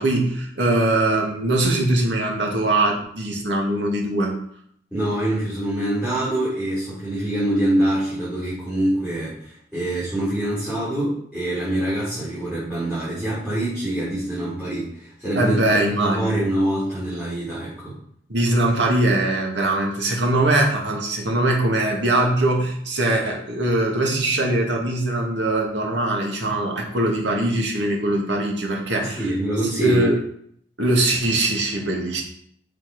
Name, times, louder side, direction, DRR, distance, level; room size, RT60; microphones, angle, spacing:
voice 1, 0.0-4.3 15.4-16.3 18.3-29.3 29.8-30.2 30.8-32.2, right 1 dB, 75° right, 0 dB, 2.2 m, -21 dB
voice 2, 4.9-15.5 15.9-18.0 29.0-30.1, right 1 dB, 5° right, -11 dB, 4.2 m, -25 dB
7.0 x 6.1 x 5.5 m, 0.67 s
head